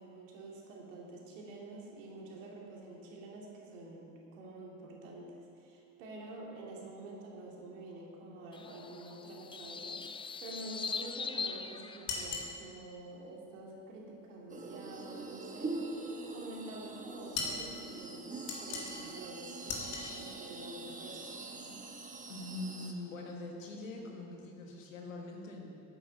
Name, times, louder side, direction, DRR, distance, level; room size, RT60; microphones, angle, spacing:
voice 1, 0.0-21.7, right 2 dB, 75° right, -2 dB, 2.5 m, -48 dB
sound 1, 8.5-12.5, left 5 dB, 15° left, 0.5 m, -41 dB
sound 2, 12.1-12.5 17.3-17.7 18.5-19.1 19.7-20.2, left 4 dB, 65° left, 2.1 m, -37 dB
sound 3, 14.5-22.9, right 3 dB, 20° right, 1.3 m, -44 dB
voice 2, 22.3-25.8, left 2 dB, 85° left, 1 dB, 1.7 m, -43 dB
9.8 x 8.8 x 6.4 m, 2.5 s
hypercardioid pair, 65°, 38 cm